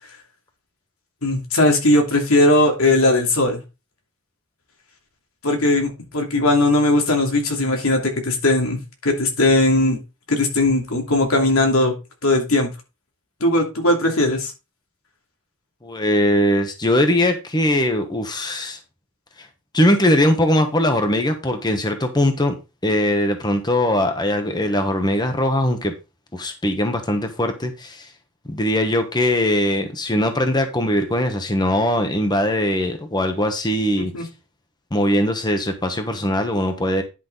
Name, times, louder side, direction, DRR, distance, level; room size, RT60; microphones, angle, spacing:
voice 1, 1.2-3.6 5.4-10.0 10.3-11.9 12.2-12.7 13.4-14.5 34.1-34.2, left 2 dB, 85° left, 2 dB, 2.7 m, -18 dB
voice 2, 15.8-18.8 19.4-19.5 19.7-22.5 22.8-25.9 26.3-28.1 28.5-34.3 34.9-37.0, left 1 dB, 20° left, 6 dB, 1.2 m, -20 dB
10.5 x 5.7 x 4.0 m, 0.27 s
head